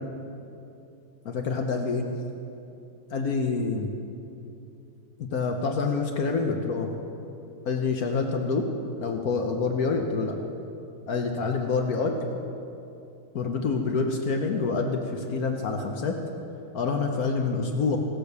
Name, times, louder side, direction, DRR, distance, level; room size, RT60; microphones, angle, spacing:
voice 1, 1.2-2.1 3.1-3.9 5.2-6.9 7.6-8.7 9.0-10.4 11.1-12.2 13.3-16.2 16.7-18.0, left 4 dB, 60° left, 3 dB, 1.0 m, -27 dB
17.0 x 6.7 x 6.7 m, 2.8 s
omnidirectional pair, 2.4 m